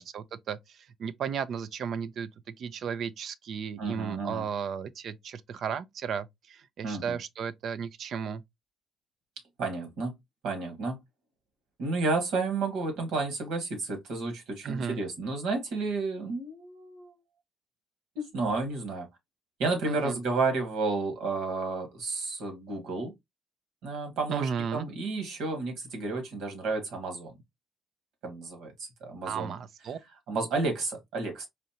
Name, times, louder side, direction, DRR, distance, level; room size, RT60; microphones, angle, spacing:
voice 1, 0.0-2.3 2.6-8.4 14.6-15.0 19.9-20.2 24.3-24.9 29.2-30.0, right 7 dB, 65° right, 0.5 m, -34 dB
voice 2, 3.8-4.5 6.8-7.2 9.6-10.1 10.4-11.0 11.8-17.2 18.2-19.1 19.6-23.1 23.8-27.4 28.2-29.6 30.3-31.5, right 3 dB, 90° right, 1.7 m, -31 dB
4.3 x 2.5 x 2.8 m
cardioid pair, 90°, 0 cm